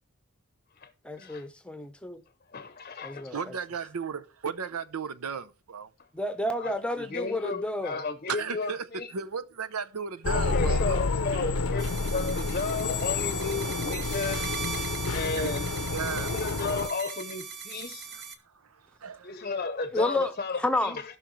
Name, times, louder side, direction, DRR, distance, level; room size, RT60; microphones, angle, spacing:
voice 1, 1.0-2.2 3.0-3.4 6.1-8.0 19.9-21.0, left 1 dB, 5° left, 0.8 m, -30 dB
voice 2, 2.5-3.3 6.5-9.1 10.3-14.6 15.1-15.6 16.2-18.1 19.2-21.0, left 4 dB, 35° left, 0.7 m, -33 dB
voice 3, 3.3-5.9 8.3-11.0 11.3-11.5 15.3-16.3 18.1-19.5, right 6 dB, 85° right, 0.7 m, -35 dB
sound 1, 10.2-16.9, left 4 dB, 75° left, 0.7 m, -29 dB
sound 2, 11.8-18.4, right 6 dB, 50° right, 1.0 m, -38 dB
16.5 x 5.8 x 3.2 m
head